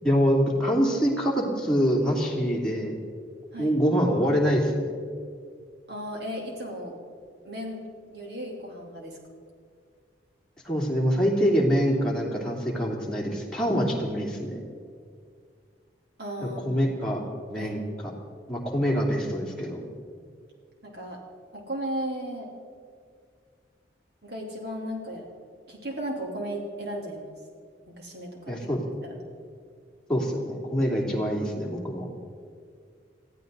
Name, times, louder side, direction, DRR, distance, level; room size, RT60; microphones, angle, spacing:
voice 1, 0.0-3.0 3.6-4.9 10.6-14.6 16.4-17.2 17.5-17.8 18.5-19.8 28.5-28.8 30.1-32.1, equal, 5° left, -3 dB, 2.8 m, -25 dB
voice 2, 5.9-7.0 7.4-7.8 8.1-9.2 16.2-17.0 17.5-17.8 20.8-21.2 21.5-22.5 24.2-25.2 25.7-27.3 27.9-28.7 29.0-29.2, equal, 60° right, -1 dB, 3.4 m, -35 dB
21.0 x 15.0 x 4.0 m, 2.1 s
head